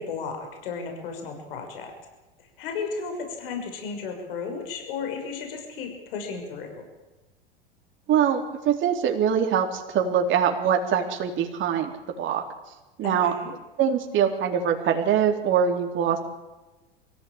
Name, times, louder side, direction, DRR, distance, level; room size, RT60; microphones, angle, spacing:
voice 1, 0.0-1.9 2.6-6.9 13.0-13.5, left 5 dB, 65° left, 4 dB, 6.1 m, -34 dB
voice 2, 8.1-12.4 13.0-13.3 13.8-16.2, right 8 dB, 40° right, 3 dB, 3.8 m, -23 dB
24.5 x 16.0 x 8.9 m, 1.1 s
hypercardioid pair, 90°, 29 cm